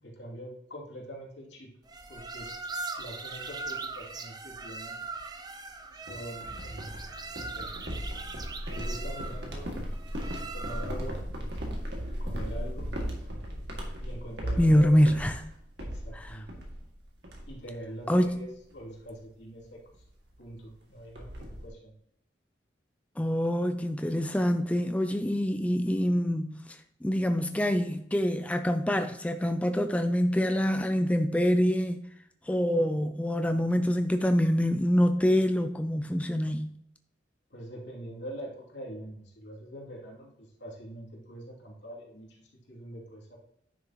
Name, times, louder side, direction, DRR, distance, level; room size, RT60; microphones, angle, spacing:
voice 1, 0.0-1.7 2.1-2.5 3.0-5.0 5.9-7.7 8.6-9.7 10.5-11.2 12.2-12.9 14.0-15.2 15.8-16.5 17.5-20.0 20.4-21.9 37.5-43.4, equal, 75° left, 2.6 m, -44 dB
sound 1, 1.9-11.1, right 3 dB, 20° right, 0.7 m, -40 dB
sound 2, 6.1-16.9 17.2-17.7 18.0-18.3 18.7-18.9 20.0-20.1 20.4-20.5 20.7-21.7, equal, 70° right, 2.1 m, -36 dB
voice 2, 14.6-15.5 16.1-16.3 18.1-18.4 23.2-32.0 32.5-36.7, equal, 5° left, 0.4 m, -25 dB
10.5 x 6.3 x 2.9 m
head